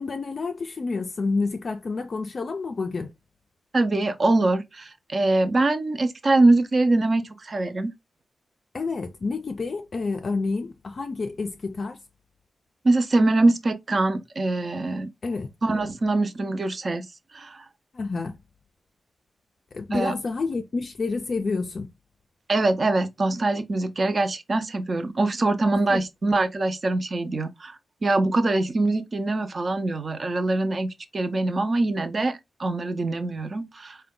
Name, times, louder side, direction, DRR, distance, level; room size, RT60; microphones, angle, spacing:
voice 1, 0.0-3.1 8.7-12.0 15.2-15.5 17.9-18.4 19.7-21.9 25.9-26.0, left 4 dB, 40° left, 0.4 m, -29 dB
voice 2, 3.7-7.9 12.8-15.1 15.6-17.1 17.3-17.6 19.9-20.1 22.5-34.0, right 2 dB, 35° right, 0.5 m, -23 dB
4.6 x 2.2 x 3.7 m
wide cardioid pair, 180°, 0 cm